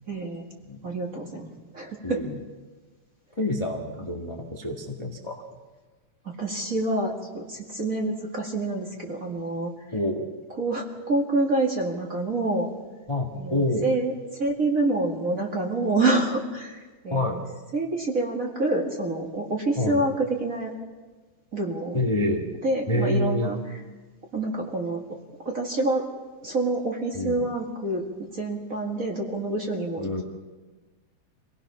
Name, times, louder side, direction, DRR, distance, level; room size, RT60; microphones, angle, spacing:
voice 1, 0.1-0.5 0.8-2.2 6.4-9.7 10.6-12.7 13.3-17.4 17.7-20.7 21.5-22.0 22.6-23.6 24.3-25.0 25.4-26.1 26.4-30.2, right 2 dB, 30° right, 0 dB, 2.1 m, -27 dB
voice 2, 2.0-2.3 3.4-5.4 9.9-10.2 13.1-13.9 17.1-17.4 19.8-20.0 21.9-22.5 22.9-23.5 27.1-27.4 30.0-30.2, left 1 dB, 15° left, 0 dB, 1.3 m, -27 dB
26.0 x 18.0 x 5.8 m, 1.3 s
omnidirectional pair, 3.3 m